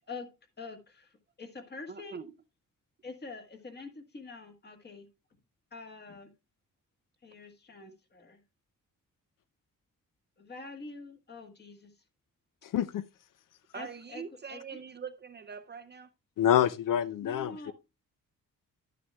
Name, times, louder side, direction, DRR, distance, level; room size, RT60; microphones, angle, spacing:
voice 1, 0.6-2.2 3.0-5.1 5.7-6.3 7.2-8.4 10.4-11.9 13.7-14.2 14.5-14.8 17.2-17.7, left 3 dB, 30° left, 1.4 m, -45 dB
voice 2, 1.9-2.3 13.7-16.1, right 6 dB, 30° right, 0.4 m, -43 dB
voice 3, 12.6-13.0 16.4-17.7, left 10 dB, 70° left, 0.5 m, -27 dB
11.0 x 9.2 x 2.2 m
wide cardioid pair, 160°, 34 cm